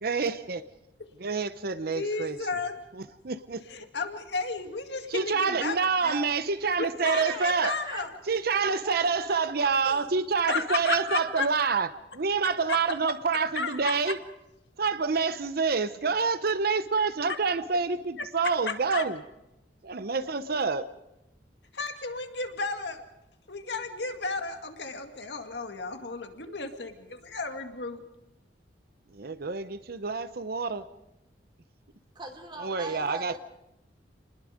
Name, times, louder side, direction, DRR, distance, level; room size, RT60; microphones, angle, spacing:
voice 1, 0.0-0.6 1.2-2.4 2.9-3.6 5.1-7.8 8.3-11.9 12.1-14.2 14.8-19.2 19.8-20.9 29.1-30.9 32.6-33.4, right 5 dB, 55° right, 13 dB, 0.7 m, -27 dB
voice 2, 1.9-2.8 3.7-5.7 6.0-6.2 6.8-8.1 10.5-11.5 13.6-14.1 18.9-19.1 21.7-23.0 23.5-28.0, left 4 dB, 70° left, 5 dB, 2.1 m, -33 dB
voice 3, 7.0-8.4 8.8-10.1 32.1-33.4, right 2 dB, 25° right, 5 dB, 3.0 m, -41 dB
28.5 x 20.5 x 5.1 m, 0.91 s
head